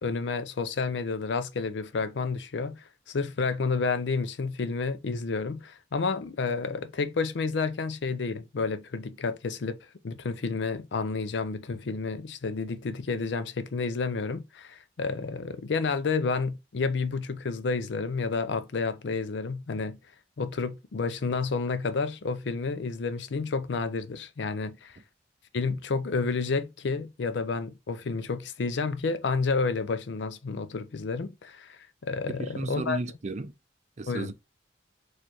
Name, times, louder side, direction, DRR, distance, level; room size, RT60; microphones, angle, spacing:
voice 1, 0.0-9.8 10.0-20.0 20.4-25.0 25.5-33.0 34.1-34.3, left 4 dB, 70° left, 0.5 m, -30 dB
voice 2, 32.3-33.5 34.0-34.3, right 3 dB, 40° right, 0.5 m, -34 dB
4.2 x 3.1 x 3.0 m
head